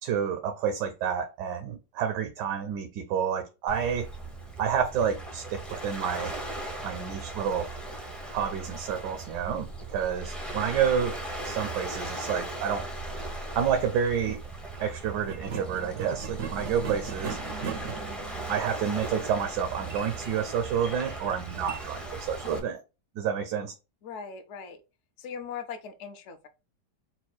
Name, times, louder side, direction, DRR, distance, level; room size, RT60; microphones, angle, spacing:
voice 1, 0.0-4.1 4.6-6.3 6.8-7.7 8.3-11.2 11.4-12.9 13.5-14.4 14.8-17.4 18.5-22.8 23.2-23.7, right 7 dB, 80° right, 1.2 m, -29 dB
Waves surf, 3.7-22.6, right 2 dB, ahead, 0.3 m, -38 dB
sound 1, 14.3-14.4 15.2-22.7, right 6 dB, 60° right, 0.7 m, -40 dB
voice 2, 24.0-24.8 25.2-26.5, left 6 dB, 60° left, 0.7 m, -39 dB
4.3 x 2.2 x 4.1 m
omnidirectional pair, 1.8 m